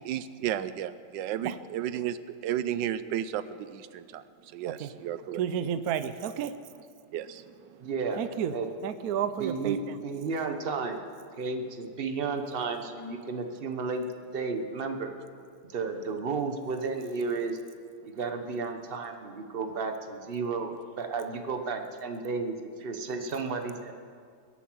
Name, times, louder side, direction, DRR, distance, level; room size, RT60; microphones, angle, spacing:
voice 1, 0.0-2.2 2.4-5.4 7.1-7.9, right 11 dB, 85° right, 14 dB, 1.3 m, -33 dB
voice 2, 5.3-6.5 8.2-8.5 8.8-10.0, right 9 dB, 65° right, 12 dB, 1.1 m, -31 dB
voice 3, 7.8-8.2 8.5-8.7 9.4-11.0 11.4-15.1 15.6-17.6 18.0-23.9, right 4 dB, 40° right, 6 dB, 1.1 m, -33 dB
21.5 x 8.4 x 6.2 m, 2.2 s
omnidirectional pair, 1.9 m